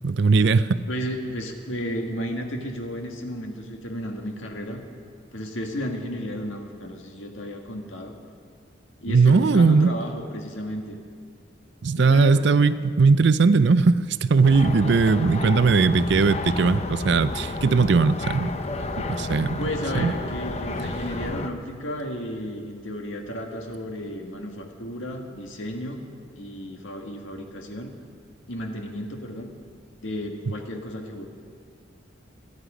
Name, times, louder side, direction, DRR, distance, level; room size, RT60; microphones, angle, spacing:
voice 1, 0.0-0.8 9.1-9.9 11.8-18.5 19.0-19.6 19.9-20.1, right 4 dB, 55° right, 14 dB, 0.4 m, -19 dB
voice 2, 0.9-4.8 5.3-8.1 9.0-11.0 11.9-12.6 19.6-26.0 26.3-27.9 28.5-29.5 30.0-31.3, equal, 75° left, 3 dB, 1.8 m, -33 dB
sound 1, 14.4-21.5, left 2 dB, 30° left, 0.6 m, -31 dB
27.0 x 9.8 x 5.0 m, 2.1 s
head